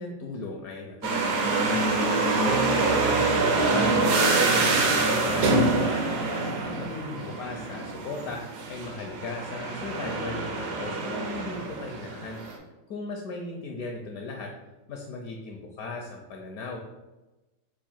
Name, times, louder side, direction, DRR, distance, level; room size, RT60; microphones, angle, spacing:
voice 1, 0.0-12.4 12.9-14.5 14.9-16.9, left 3 dB, 70° left, 1 dB, 0.9 m, -38 dB
sound 1, 1.0-12.6, right 3 dB, 65° right, 1.0 m, -25 dB
4.7 x 2.5 x 4.3 m, 1.1 s
omnidirectional pair, 2.0 m